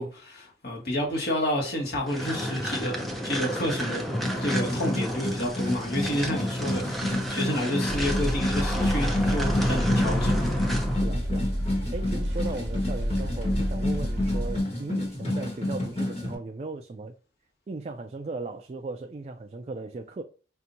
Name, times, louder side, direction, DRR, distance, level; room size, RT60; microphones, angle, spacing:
voice 1, 0.0-4.0 4.4-10.4, left 1 dB, 60° left, 1.4 m, -30 dB
sound 1, 2.1-11.0, equal, ahead, 0.7 m, -31 dB
sound 2, 4.2-16.3, left 1 dB, 35° left, 1.4 m, -30 dB
sound 3, 7.9-14.6, equal, 70° right, 0.9 m, -30 dB
voice 2, 11.0-11.5 11.9-17.1 17.7-20.2, right 3 dB, 35° right, 0.3 m, -37 dB
5.6 x 2.6 x 2.7 m
head